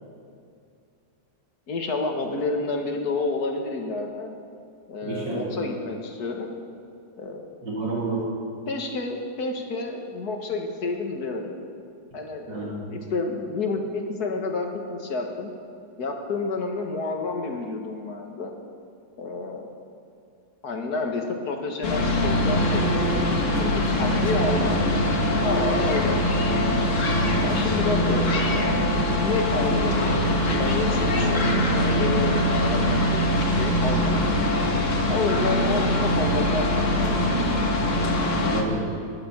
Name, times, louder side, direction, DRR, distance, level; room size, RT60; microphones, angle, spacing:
voice 1, 1.7-4.3 4.9-6.5 7.2-7.5 8.7-11.5 12.1-15.5 16.0-18.5 19.2-19.7 20.6-24.9 25.4-26.9 27.4-28.8 29.1-34.4 35.1-36.7 37.0-37.5, left 3 dB, 60° left, 3 dB, 1.9 m, -30 dB
voice 2, 5.0-5.5 7.6-8.2 12.5-12.7 25.8-26.0 38.3-38.8, right 2 dB, 90° right, -6 dB, 3.4 m, -29 dB
sound 1, 21.8-38.6, left 1 dB, 45° left, 1.7 m, -23 dB
sound 2, 23.2-36.4, right 6 dB, 40° right, 0.6 m, -40 dB
20.0 x 7.8 x 7.4 m, 2.4 s
omnidirectional pair, 1.9 m